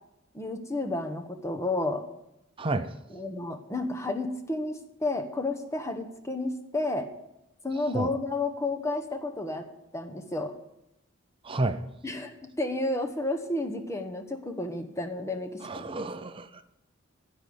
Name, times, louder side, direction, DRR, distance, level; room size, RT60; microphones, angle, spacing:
voice 1, 0.3-2.1 3.1-7.1 7.6-9.7 9.9-10.5 12.0-16.0, left 2 dB, 15° left, 5 dB, 1.1 m, -31 dB
voice 2, 2.6-2.9 7.9-8.1 11.4-11.8 15.6-16.6, right 2 dB, 25° right, 10 dB, 0.5 m, -30 dB
15.0 x 5.2 x 7.9 m, 0.87 s
head